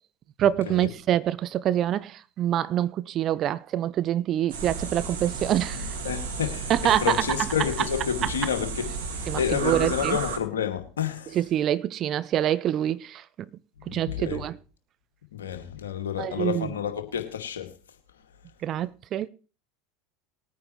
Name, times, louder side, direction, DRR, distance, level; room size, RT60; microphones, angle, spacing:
voice 1, 0.4-5.9 6.7-7.1 9.3-10.2 11.3-13.2 13.9-14.5 16.2-16.7 18.6-19.3, right 11 dB, 40° right, 0.6 m, -26 dB
sound 1, 4.5-10.4, right 4 dB, 70° right, 2.1 m, -33 dB
voice 2, 5.7-11.4 13.9-14.4 15.3-17.7, left 8 dB, 80° left, 2.2 m, -30 dB
20.0 x 9.3 x 3.1 m
hypercardioid pair, 80°, 0 cm